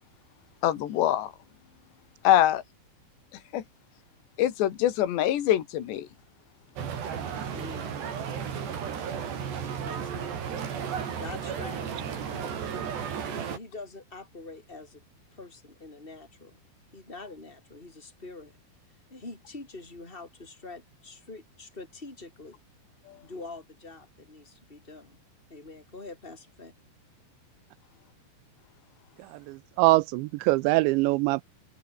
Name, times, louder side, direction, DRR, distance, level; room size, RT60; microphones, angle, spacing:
voice 1, 0.6-1.3 2.2-2.6 3.5-3.6 4.4-6.1, left 12 dB, 65° left, 4.3 m, -24 dB
sound 1, 6.8-13.6, right 7 dB, 60° right, 5.8 m, -34 dB
voice 2, 7.5-8.0 8.5-8.6 9.8-10.5 11.2-12.8 13.3-15.0 15.3-16.6 16.9-18.6 19.1-22.6 23.2-25.2 25.5-26.7, left 3 dB, 10° left, 6.4 m, -45 dB
voice 3, 29.2-31.4, right 21 dB, 85° right, 2.6 m, -24 dB
omnidirectional pair, 5.5 m